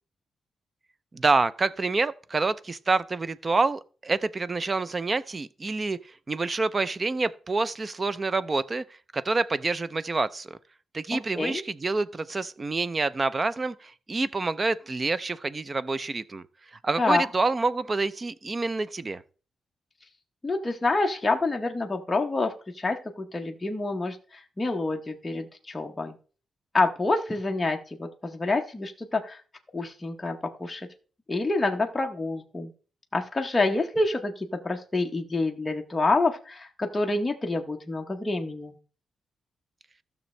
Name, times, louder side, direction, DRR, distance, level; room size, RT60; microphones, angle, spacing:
voice 1, 1.1-8.8 9.1-10.6 10.9-16.4 16.7-19.2, right 3 dB, 25° right, 0.4 m, -27 dB
voice 2, 11.1-11.6 17.0-17.3 20.4-26.1 26.7-29.4 29.7-30.9 31.3-32.7 33.1-38.8, left 2 dB, 15° left, 0.8 m, -27 dB
15.0 x 6.2 x 3.2 m
wide cardioid pair, 165°, 0 cm